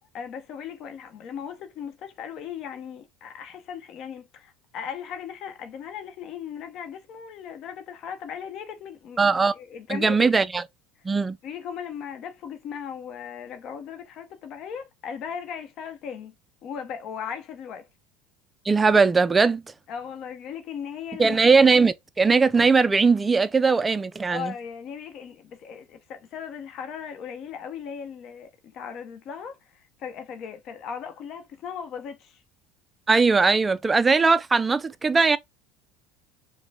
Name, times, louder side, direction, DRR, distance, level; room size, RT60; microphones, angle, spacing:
voice 1, 0.1-10.3 11.4-16.3 16.6-17.9 19.9-21.4 24.3-32.4, left 7 dB, 50° left, 0.8 m, -37 dB
voice 2, 9.2-9.5 9.9-10.6 11.0-11.4 18.7-19.6 21.2-24.5 33.1-35.4, right 4 dB, 15° right, 0.4 m, -20 dB
5.2 x 2.2 x 3.3 m
supercardioid pair, 120°, 0 cm